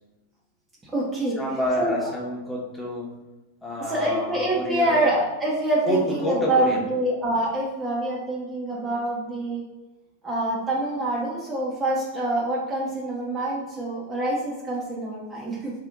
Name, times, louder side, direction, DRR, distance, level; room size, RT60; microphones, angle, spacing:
voice 1, 0.8-1.4 1.8-2.1 3.9-9.6 10.2-15.7, right 1 dB, 15° right, -5 dB, 0.8 m, -26 dB
voice 2, 1.4-3.1 3.6-5.0 5.8-6.8, equal, 5° left, -4 dB, 1.1 m, -28 dB
3.7 x 2.7 x 3.7 m, 1.0 s
figure-of-eight pair, 90°, 0 cm